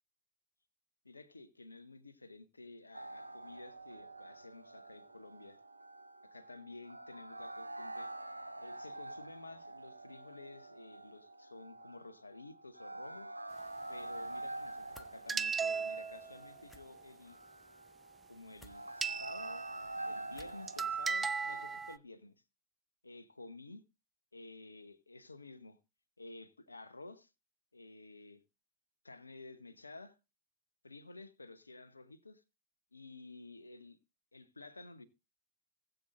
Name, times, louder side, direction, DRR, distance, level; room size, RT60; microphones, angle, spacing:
voice 1, 1.0-5.6 6.2-8.1 8.6-13.3 13.9-17.4 18.3-19.6 20.0-22.4 23.0-23.8 24.3-25.8 26.2-27.3 27.7-28.4 29.0-30.2 30.8-32.4 32.9-34.0 34.3-35.1, left 3 dB, 80° left, 0.9 m, -52 dB
sound 1, 2.9-21.7, right 2 dB, 85° right, 0.6 m, -47 dB
sound 2, 14.9-15.1 16.6-16.8 18.6-18.8 20.3-20.7, equal, 5° left, 1.4 m, -57 dB
sound 3, 15.3-16.4 19.0-19.8 20.4-20.5 20.7-22.0, right 5 dB, 15° right, 0.4 m, -36 dB
19.0 x 7.9 x 2.5 m
figure-of-eight pair, 90°, 0 cm